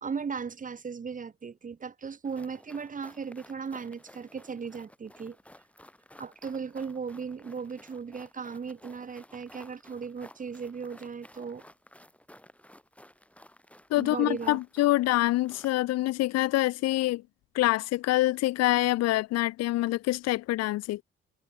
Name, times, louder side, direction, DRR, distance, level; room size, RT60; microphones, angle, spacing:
voice 1, 0.0-5.4 6.2-11.6 13.9-14.6, right 6 dB, 25° right, 0.8 m, -37 dB
sound 1, 2.2-15.8, left 1 dB, 5° left, 4.4 m, -54 dB
voice 2, 13.9-17.2 17.5-21.0, left 17 dB, 60° left, 0.6 m, -26 dB
hypercardioid pair, 45°, 30 cm